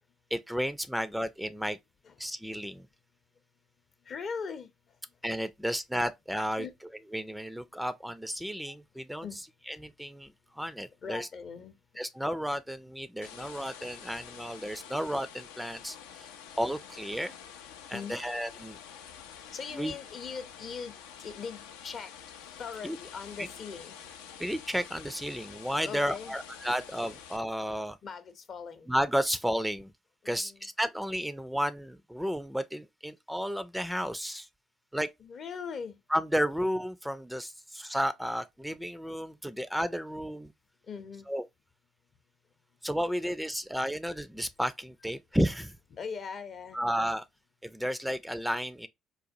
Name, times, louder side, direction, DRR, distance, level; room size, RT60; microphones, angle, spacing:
voice 1, 0.3-1.8 2.2-2.9 5.2-6.7 7.1-9.2 9.7-11.3 12.0-16.3 16.6-17.3 17.9-18.8 19.7-19.9 22.8-23.0 24.4-28.0 28.9-29.9 30.3-34.5 34.9-35.1 36.1-40.5 41.3-41.4 42.8-45.8 46.7-47.2 47.6-48.9, equal, 5° right, 0.4 m, -32 dB
voice 2, 4.1-4.7 6.6-6.7 9.2-9.4 11.0-11.7 17.9-18.2 19.5-22.1 22.6-24.0 25.8-26.4 28.0-28.9 30.2-30.7 35.2-36.0 40.9-41.3 45.9-46.8, left 6 dB, 55° left, 0.6 m, -40 dB
sound 1, 13.2-27.4, left 8 dB, 90° left, 0.4 m, -48 dB
4.0 x 2.2 x 2.6 m
hypercardioid pair, 60°, 0 cm